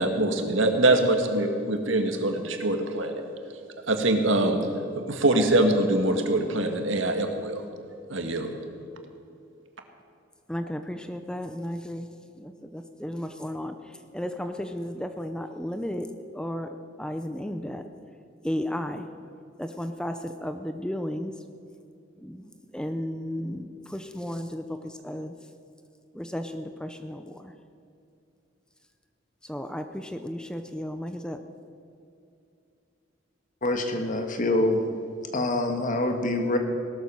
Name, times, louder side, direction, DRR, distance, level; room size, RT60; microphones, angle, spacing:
voice 1, 0.0-3.2 3.9-4.6 5.0-7.6 8.1-8.5, right 2 dB, 85° right, 5 dB, 1.9 m, -24 dB
voice 2, 10.5-17.8 18.4-19.1 19.6-21.3 22.2-25.3 26.1-27.5 29.4-31.4, equal, 5° left, 7 dB, 0.6 m, -34 dB
voice 3, 33.6-34.8 35.3-36.6, left 2 dB, 45° left, 5 dB, 1.7 m, -25 dB
18.0 x 12.5 x 6.4 m, 2.6 s
head